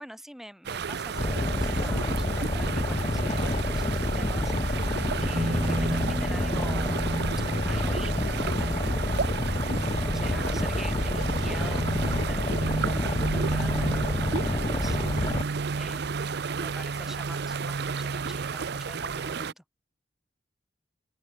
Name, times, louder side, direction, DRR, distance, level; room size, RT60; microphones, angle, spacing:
voice 1, 0.0-7.2 7.7-9.1 10.0-19.6, equal, ahead, 3.4 m, -45 dB
sound 1, 0.6-19.5, right 5 dB, 65° right, 0.6 m, -32 dB
Boat Water vehicle, 1.1-15.4, left 1 dB, 30° left, 0.8 m, -28 dB
sound 2, 5.3-14.4, right 1 dB, 30° right, 1.5 m, -37 dB
open air
head